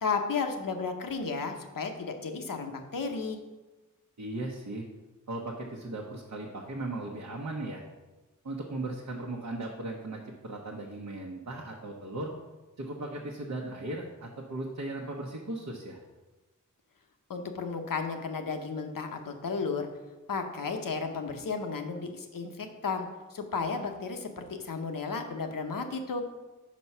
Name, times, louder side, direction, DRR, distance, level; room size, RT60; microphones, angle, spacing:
voice 1, 0.0-3.4 17.3-19.9 20.3-26.2, left 4 dB, 85° left, 5 dB, 0.9 m, -33 dB
voice 2, 4.2-4.8 5.3-7.8 8.4-12.3 12.8-16.0, right 2 dB, 60° right, -2 dB, 1.0 m, -37 dB
5.8 x 5.3 x 5.5 m, 1.2 s
wide cardioid pair, 85°, 32 cm